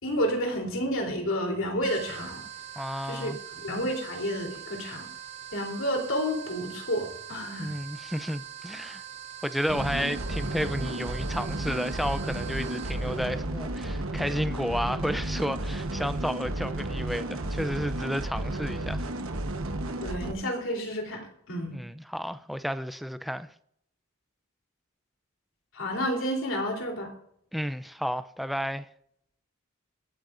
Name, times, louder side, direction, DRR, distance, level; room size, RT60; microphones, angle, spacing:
voice 1, 0.0-2.4 3.1-5.1 5.5-7.7 20.0-21.8 25.7-27.1, equal, 65° left, 3.7 m, -30 dB
sound 1, 1.8-13.2, right 10 dB, 35° right, 2.8 m, -43 dB
voice 2, 2.8-3.4 7.6-9.0 9.4-19.1 21.7-23.5 27.5-28.9, equal, ahead, 0.5 m, -32 dB
sound 2, 9.7-20.3, right 1 dB, 75° right, 1.2 m, -32 dB
25.0 x 9.2 x 2.6 m
head